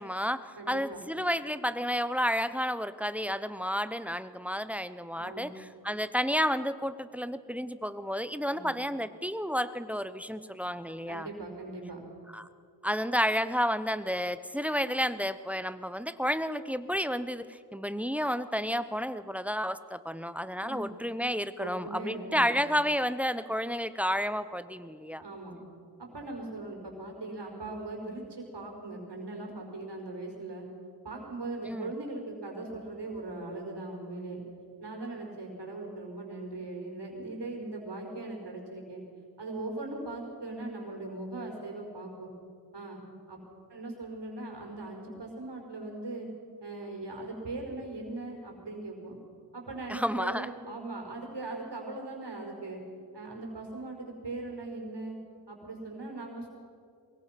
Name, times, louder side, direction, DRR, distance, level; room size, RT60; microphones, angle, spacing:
voice 1, 0.0-11.3 12.3-12.5 12.8-25.2 31.6-31.9 49.9-50.5, equal, 5° right, 13 dB, 0.8 m, -31 dB
voice 2, 0.6-1.0 5.2-5.5 8.5-8.7 11.1-12.0 20.6-20.9 21.6-22.5 25.2-25.6 26.0-30.7 31.0-34.4 34.8-39.0 39.4-42.3 42.7-43.0 43.3-43.4 43.7-46.3 46.6-49.2 49.5-52.8 53.1-55.2 55.5-56.5, right 2 dB, 70° right, 1 dB, 5.3 m, -39 dB
23.5 x 21.5 x 6.0 m, 2.4 s
cardioid pair, 65°, 42 cm